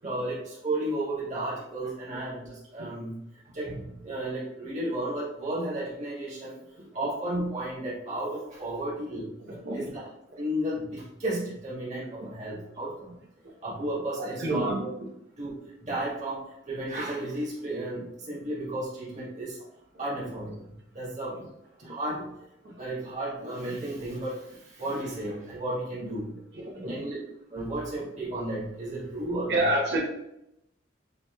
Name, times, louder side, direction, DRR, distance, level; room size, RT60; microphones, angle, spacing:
voice 1, 0.0-3.2 3.5-6.6 6.9-9.3 9.7-9.9 10.4-13.1 13.6-14.9 15.4-15.5 15.8-19.6 20.0-20.7 20.9-21.4 21.8-22.3 22.6-26.4 26.8-27.2 27.5-29.7, right 1 dB, 40° right, -7 dB, 1.7 m, -33 dB
voice 2, 9.4-9.9 12.2-12.3 14.2-14.8 19.9-20.0 21.8-22.0 26.5-27.0 29.5-30.0, right 1 dB, 60° right, -2 dB, 1.0 m, -29 dB
7.2 x 3.0 x 2.3 m, 0.82 s
head